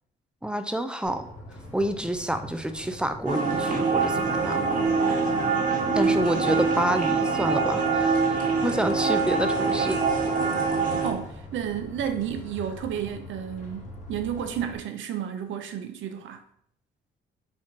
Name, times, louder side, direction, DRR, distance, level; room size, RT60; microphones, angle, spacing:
voice 1, 0.4-1.2 1.7-4.6 5.9-10.0, right 1 dB, 5° right, 0.4 m, -28 dB
sound 1, 1.0-14.8, left 1 dB, 35° left, 1.2 m, -43 dB
sound 2, 3.3-11.1, right 4 dB, 45° right, 1.4 m, -24 dB
voice 2, 11.0-16.4, right 9 dB, 75° right, 0.6 m, -32 dB
4.4 x 2.4 x 4.5 m
cardioid pair, 90°, 20 cm